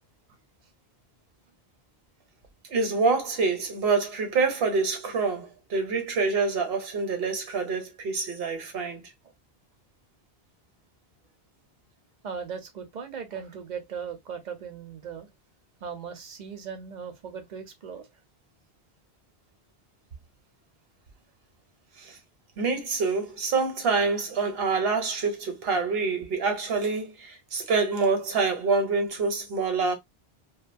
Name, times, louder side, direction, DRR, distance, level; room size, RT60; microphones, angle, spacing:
voice 1, 2.7-9.1 22.0-22.2 22.6-30.0, right 4 dB, 70° right, 1.0 m, -26 dB
voice 2, 12.2-15.3 15.8-18.1, right 6 dB, 50° right, 0.7 m, -38 dB
2.5 x 2.3 x 2.5 m
omnidirectional pair, 1.1 m